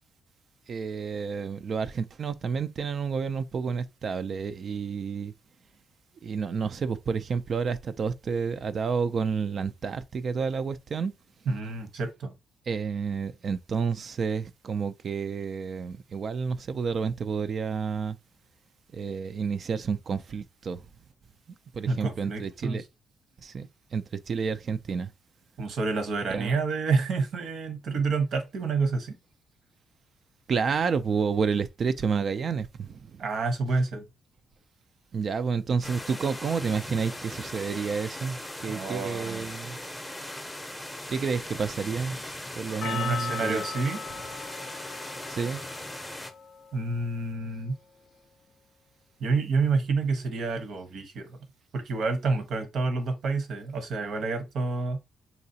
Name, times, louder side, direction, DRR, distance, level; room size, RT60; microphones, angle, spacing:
voice 1, 0.7-5.3 6.2-11.1 12.7-18.2 18.9-20.9 21.7-22.8 23.4-25.1 26.3-26.6 30.5-33.2 35.1-39.8 41.1-42.2 42.6-43.6 45.3-45.6, right 5 dB, 50° right, 0.3 m, -30 dB
voice 2, 11.5-12.3 21.9-22.8 25.6-29.2 33.2-34.1 38.7-39.5 42.8-44.0 46.7-47.7 49.2-51.4 51.7-55.0, right 4 dB, 65° right, 1.0 m, -28 dB
sound 1, 35.8-46.3, left 1 dB, 10° left, 0.6 m, -39 dB
Percussion, 42.8-47.1, left 7 dB, 60° left, 0.4 m, -38 dB
3.9 x 2.3 x 2.7 m
cardioid pair, 90°, 0 cm